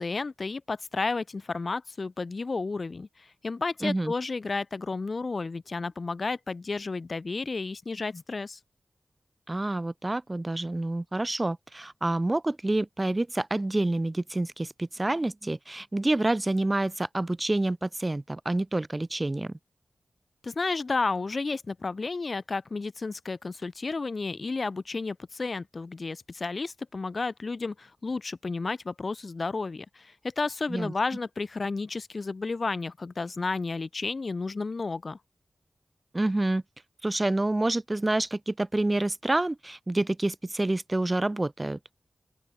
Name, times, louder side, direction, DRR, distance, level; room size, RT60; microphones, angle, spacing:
voice 1, 0.0-3.1 3.4-8.6 20.4-35.2, left 3 dB, 50° left, 1.7 m, -32 dB
voice 2, 3.8-4.1 9.5-19.5 30.7-30.9 36.1-36.6 37.0-41.8, right 2 dB, 25° right, 1.6 m, -28 dB
open air
wide cardioid pair, 80°, 0 cm